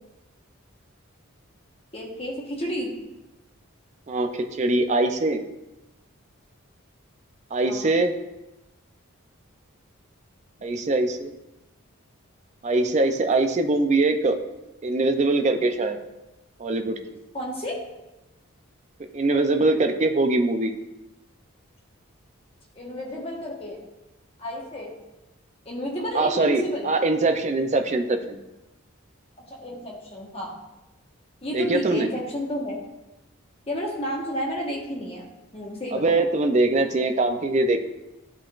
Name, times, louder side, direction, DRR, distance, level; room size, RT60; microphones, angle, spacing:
voice 1, 1.9-2.9 7.7-7.9 17.3-17.7 22.7-23.8 24.4-24.9 25.6-26.9 29.5-30.5 31.4-32.8 33.7-35.2 35.5-36.1, equal, 25° left, -2 dB, 1.2 m, -31 dB
voice 2, 4.1-5.4 7.5-8.1 10.6-11.3 12.6-14.4 14.8-16.0 16.6-17.2 19.1-20.7 26.1-28.4 31.5-32.1 35.9-37.9, right 2 dB, 35° right, 7 dB, 0.4 m, -22 dB
11.0 x 3.9 x 2.4 m, 1.0 s
head